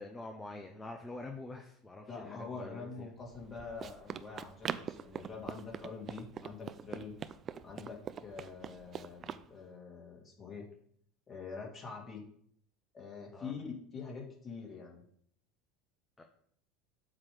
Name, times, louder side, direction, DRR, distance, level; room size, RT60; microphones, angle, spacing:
voice 1, 0.0-3.1 13.3-13.5 16.2-16.3, left 2 dB, 15° left, 4 dB, 0.8 m, -46 dB
voice 2, 2.1-7.2 7.6-10.7 11.3-12.3 12.9-15.0, left 4 dB, 30° left, 0 dB, 2.2 m, -45 dB
Run, 3.3-9.5, right 8 dB, 40° right, 0.4 m, -43 dB
7.4 x 3.2 x 6.3 m, 0.65 s
hypercardioid pair, 80°, 0 cm